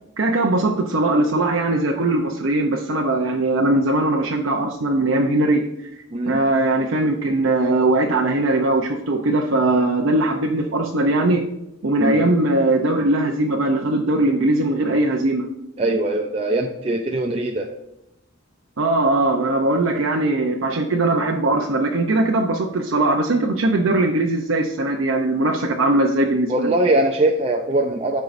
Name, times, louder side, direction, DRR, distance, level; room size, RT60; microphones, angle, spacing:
voice 1, 0.2-5.6 5.9-11.5 11.8-15.5 18.8-26.7, right 2 dB, 70° right, 0 dB, 0.7 m, -20 dB
voice 2, 15.8-17.7 26.5-28.2, right 1 dB, 30° right, 1 dB, 0.5 m, -21 dB
13.0 x 4.6 x 2.6 m, 0.84 s
head